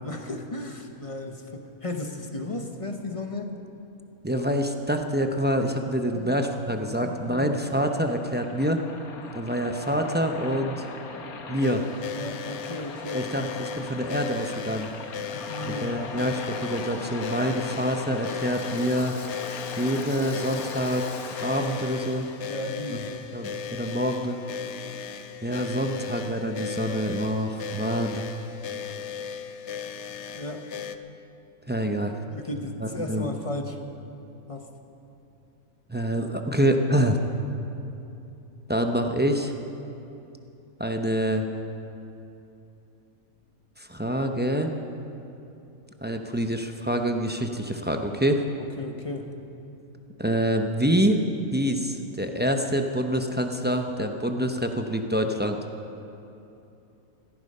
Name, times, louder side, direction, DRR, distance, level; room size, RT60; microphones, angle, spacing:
voice 1, 0.0-3.5 6.1-6.4 6.9-7.5 12.1-13.3 15.3-16.0 22.5-23.4 30.3-30.7 32.3-33.8 34.5-34.7 48.6-49.3, left 2 dB, 25° left, 5 dB, 0.9 m, -35 dB
voice 2, 4.2-8.8 9.3-10.8 11.5-11.8 13.1-14.9 15.6-19.2 19.8-21.0 21.4-22.3 22.9-23.0 23.3-24.4 25.4-28.2 31.7-32.1 32.8-33.3 35.9-37.2 38.7-39.5 40.8-41.5 43.8-44.7 46.0-48.4 50.2-51.2 51.5-55.6, equal, 15° right, 4 dB, 0.4 m, -26 dB
Waves surf, 6.7-22.4, left 4 dB, 80° left, 1.6 m, -39 dB
sound 1, 11.6-31.0, left 7 dB, 60° left, 0.8 m, -37 dB
16.0 x 14.0 x 5.5 m, 2.9 s
omnidirectional pair, 1.5 m